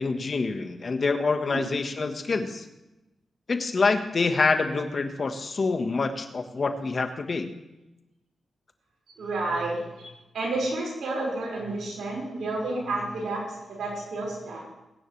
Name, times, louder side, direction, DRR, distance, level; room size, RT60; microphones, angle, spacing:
voice 1, 0.0-2.6 3.5-7.5, left 4 dB, 50° left, 7 dB, 1.4 m, -26 dB
voice 2, 9.2-10.1 10.3-13.4 13.7-14.6, right 2 dB, 85° right, -3 dB, 5.3 m, -30 dB
20.5 x 9.8 x 3.3 m, 0.96 s
cardioid pair, 65°, 0 cm